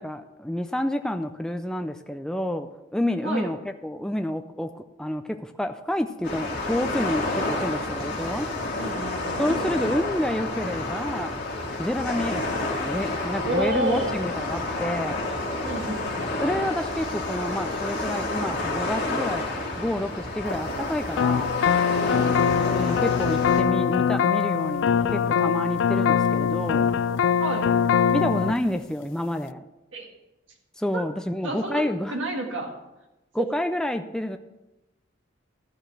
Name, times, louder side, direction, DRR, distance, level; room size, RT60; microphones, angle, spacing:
voice 1, 0.0-8.5 9.4-11.4 11.8-15.2 16.4-19.5 19.8-21.6 22.6-26.9 28.1-29.6 30.8-32.2 33.3-34.4, left 1 dB, 5° left, 7 dB, 0.4 m, -29 dB
sound 1, 6.2-23.6, left 2 dB, 55° left, 2.1 m, -29 dB
voice 2, 8.8-9.4 13.4-14.2 15.6-16.3 22.1-22.5 27.4-27.7 29.9-30.1 30.9-31.0 31.4-32.7 33.4-33.5, right 1 dB, 85° right, 1 dB, 1.8 m, -30 dB
sound 2, 21.2-28.5, left 7 dB, 75° left, 0.3 m, -22 dB
14.0 x 5.0 x 5.9 m, 1.0 s
head